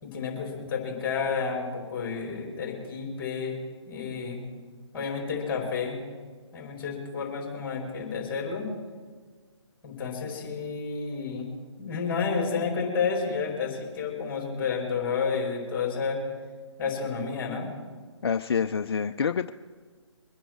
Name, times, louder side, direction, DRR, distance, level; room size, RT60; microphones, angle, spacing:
voice 1, 0.0-3.6 3.9-4.4 4.9-6.0 6.5-8.7 9.8-11.5 11.8-16.2 16.8-17.7, left 5 dB, 15° left, -1 dB, 4.9 m, -30 dB
voice 2, 18.2-19.5, left 6 dB, 55° left, 8 dB, 0.5 m, -27 dB
24.0 x 10.0 x 4.6 m, 1.5 s
figure-of-eight pair, 150°, 16 cm